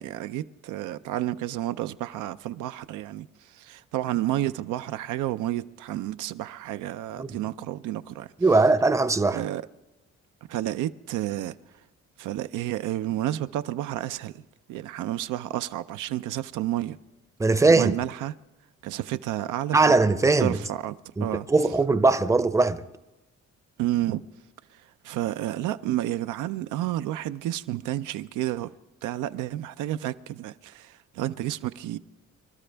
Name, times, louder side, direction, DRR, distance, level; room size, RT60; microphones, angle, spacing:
voice 1, 0.0-8.3 9.3-9.6 10.5-11.6 12.2-14.3 14.7-17.0 17.7-18.3 18.8-19.9 20.4-20.9 21.2-21.5 23.8-24.2 25.0-28.7 29.0-32.0, right 14 dB, 90° right, 0.5 m, -30 dB
voice 2, 8.4-9.4 17.4-17.9 19.7-20.6 21.2-22.8, right 3 dB, 10° right, 0.6 m, -20 dB
25.5 x 12.0 x 3.4 m
cardioid pair, 90°, 30 cm